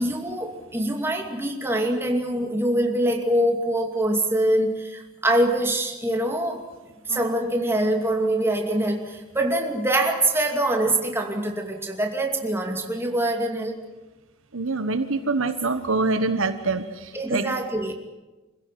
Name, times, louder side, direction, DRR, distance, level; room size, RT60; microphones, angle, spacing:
voice 1, 0.0-6.7 7.1-13.8 17.1-17.9, right 1 dB, 10° right, 2 dB, 2.5 m, -24 dB
voice 2, 14.5-16.8 17.3-17.5, right 3 dB, 60° right, 9 dB, 1.2 m, -24 dB
26.5 x 16.0 x 9.3 m, 1.1 s
head